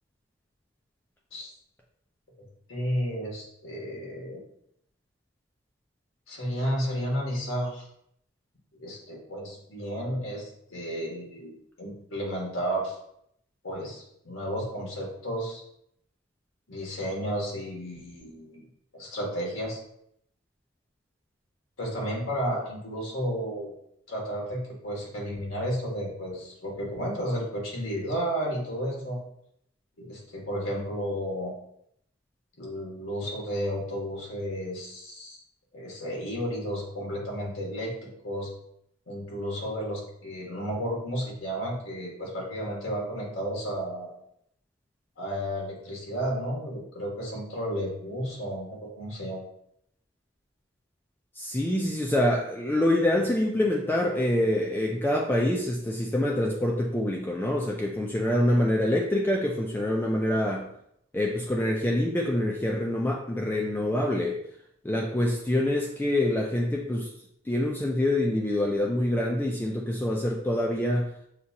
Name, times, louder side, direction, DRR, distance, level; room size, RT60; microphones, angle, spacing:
voice 1, 2.7-4.4 6.3-7.8 8.8-13.0 13.6-15.6 16.7-18.6 18.9-19.8 21.8-23.7 24.1-29.2 30.0-31.5 32.6-35.4 35.7-38.5 39.1-44.1 45.2-49.4, equal, 70° left, -2 dB, 1.5 m, -32 dB
voice 2, 51.4-60.7 61.1-64.4 64.8-67.1 67.5-71.1, left 1 dB, 10° left, -1 dB, 0.3 m, -26 dB
6.5 x 2.4 x 2.8 m, 0.72 s
head